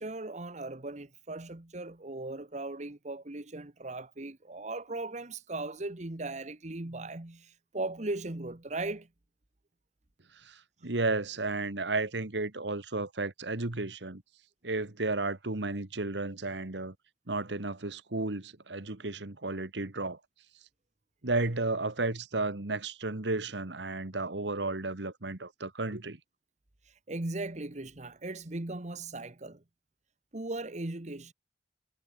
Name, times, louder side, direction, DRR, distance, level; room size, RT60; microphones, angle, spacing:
voice 1, 0.0-9.1 27.1-29.6 30.3-31.3, right 2 dB, 40° right, 1.3 m, -38 dB
voice 2, 10.3-14.2 14.6-16.9 17.3-20.2 21.2-26.2, right 2 dB, 80° right, 1.8 m, -33 dB
head